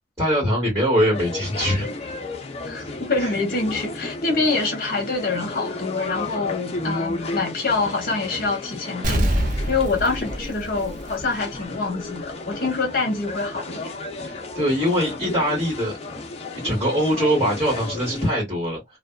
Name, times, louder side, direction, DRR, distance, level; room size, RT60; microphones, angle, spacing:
voice 1, 0.2-1.9 2.7-2.9 3.2-3.4 14.2-15.9 16.6-19.0, equal, 15° right, 1.5 m, -22 dB
sound 1, 1.1-18.3, left 2 dB, 35° left, 0.5 m, -33 dB
voice 2, 2.6-9.3 9.7-13.9, left 3 dB, 55° left, 0.9 m, -25 dB
Explosion, 9.0-11.6 12.0-12.1, right 1 dB, 50° right, 0.6 m, -25 dB
2.5 x 2.2 x 2.2 m
head